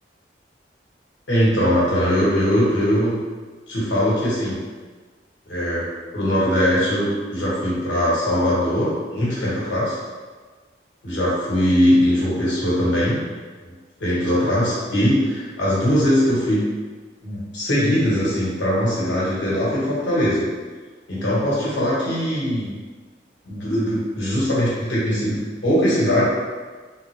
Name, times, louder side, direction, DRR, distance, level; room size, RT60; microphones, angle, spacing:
voice 1, 1.3-3.2 3.7-4.6 5.5-5.9 6.1-10.0 11.0-13.2 14.0-16.7 17.2-20.4 21.1-22.7 23.4-26.2, equal, 90° left, -8 dB, 1.4 m, -21 dB
3.9 x 2.1 x 3.0 m, 1.4 s
head